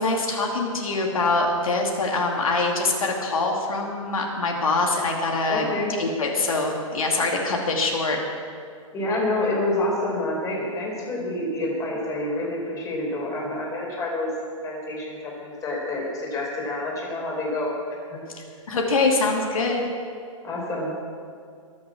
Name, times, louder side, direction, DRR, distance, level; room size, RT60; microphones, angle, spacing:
voice 1, 0.0-5.7 6.0-8.2 18.3-19.9, left 3 dB, 85° left, 0 dB, 2.6 m, -24 dB
voice 2, 5.5-5.9 8.9-14.3 14.6-17.7 18.1-18.2 20.4-20.9, left 2 dB, 20° left, -3 dB, 4.8 m, -28 dB
22.5 x 7.7 x 6.3 m, 2.3 s
hypercardioid pair, 135°, 17 cm